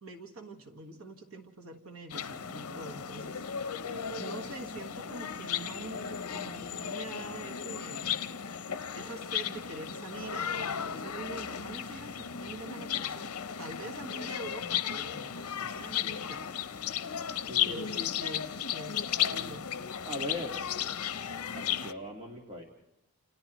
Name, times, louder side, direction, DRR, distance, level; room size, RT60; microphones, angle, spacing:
voice 1, 0.0-3.5 4.1-8.2 8.9-16.4 16.9-17.2 17.6-19.8, right 2 dB, 65° right, 4 dB, 1.5 m, -45 dB
sound 1, 2.1-21.9, left 9 dB, 75° left, 0.7 m, -35 dB
voice 2, 17.3-17.9 19.1-19.6 20.0-20.6 21.5-22.6, left 1 dB, 25° right, -1 dB, 1.8 m, -40 dB
30.0 x 28.0 x 3.1 m, 0.85 s
head